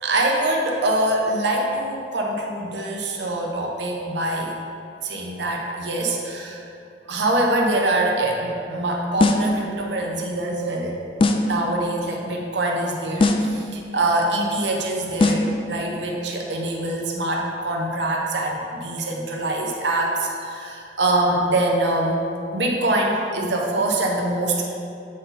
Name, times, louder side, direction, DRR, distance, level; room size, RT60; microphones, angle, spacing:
voice 1, 0.0-4.5 5.0-6.6 7.1-11.0 11.4-22.2 22.5-24.6, right 1 dB, 65° right, 0 dB, 0.9 m, -24 dB
sound 1, 9.2-9.6 11.2-11.6 13.2-13.6 15.2-15.6, left 2 dB, 30° left, 0.3 m, -19 dB
8.4 x 4.0 x 4.1 m, 2.6 s
head